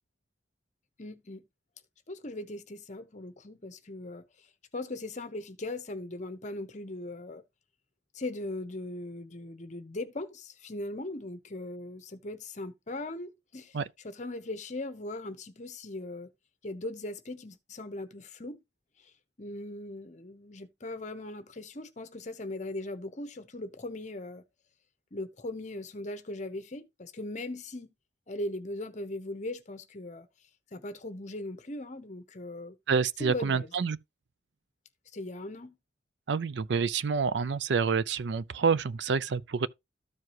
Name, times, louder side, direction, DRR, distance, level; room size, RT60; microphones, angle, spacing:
voice 1, 1.0-1.4 2.1-4.3 4.7-7.4 8.1-13.8 14.0-16.3 16.6-18.6 19.0-19.1 19.4-24.4 25.1-27.9 28.3-30.3 30.7-32.8 33.2-33.7 35.1-35.7, left 2 dB, 40° left, 0.9 m, -39 dB
voice 2, 32.9-34.0 36.3-39.7, right 5 dB, 75° right, 0.5 m, -28 dB
13.5 x 4.7 x 2.9 m
head